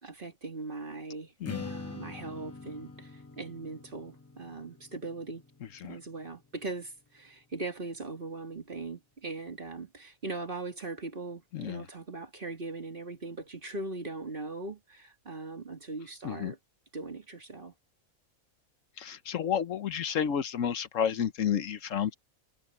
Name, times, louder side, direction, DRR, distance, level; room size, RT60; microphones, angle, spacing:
voice 1, 0.0-1.3 1.6-5.4 5.8-16.6 16.9-17.7, right 3 dB, 40° right, 2.6 m, -40 dB
Strum, 1.4-7.7, left 3 dB, 15° left, 0.8 m, -46 dB
voice 2, 11.5-11.8 16.2-16.5 19.0-22.1, left 8 dB, 70° left, 1.2 m, -31 dB
omnidirectional pair, 1.4 m